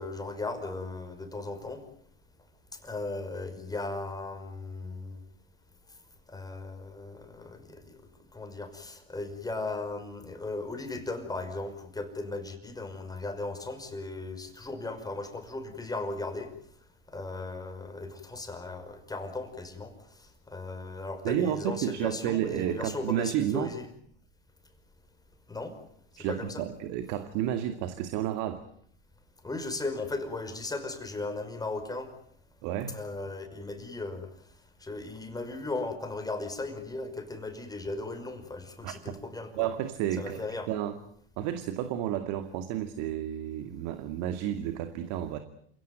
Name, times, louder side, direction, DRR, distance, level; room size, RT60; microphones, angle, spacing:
voice 1, 0.0-1.8 2.8-5.2 6.3-7.8 8.3-16.5 17.1-19.9 20.2-23.8 25.5-25.8 26.3-26.6 29.4-32.1 32.9-34.3 34.8-39.7 40.2-40.7, left 2 dB, 10° left, 7 dB, 5.4 m, -37 dB
voice 2, 21.2-23.7 26.2-28.6 32.6-33.0 38.8-39.2 39.5-41.0 41.4-45.4, right 11 dB, 55° right, 9 dB, 2.4 m, -31 dB
28.5 x 17.0 x 9.4 m, 0.67 s
hypercardioid pair, 100°, 32 cm